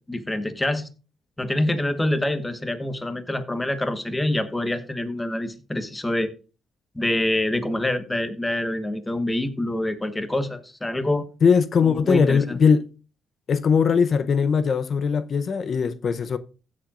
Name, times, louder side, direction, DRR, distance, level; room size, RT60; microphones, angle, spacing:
voice 1, 0.1-0.9 1.4-6.3 6.9-11.2 11.9-12.6, left 1 dB, 15° left, 1.3 m, -26 dB
voice 2, 11.4-12.8 13.5-16.4, left 6 dB, 50° left, 0.6 m, -20 dB
16.0 x 7.5 x 2.5 m
cardioid pair, 90°, 0 cm